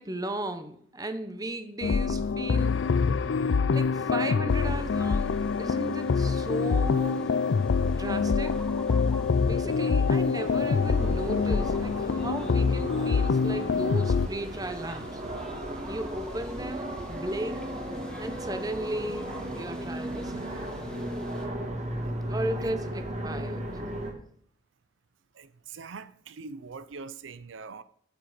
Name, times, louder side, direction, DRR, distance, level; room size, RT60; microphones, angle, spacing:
voice 1, 0.0-2.8 3.7-5.3 5.6-7.4 8.0-8.5 9.4-15.2 15.9-17.7 18.2-20.8 22.3-23.7, right 1 dB, 20° right, 0.9 m, -35 dB
sound 1, 1.8-14.3, left 5 dB, 80° left, 0.5 m, -25 dB
sound 2, 4.5-21.5, equal, 5° left, 1.5 m, -50 dB
sound 3, 10.4-24.1, right 1 dB, 35° right, 1.8 m, -36 dB
voice 2, 25.3-27.8, right 4 dB, 85° right, 0.5 m, -43 dB
12.0 x 7.6 x 5.0 m
head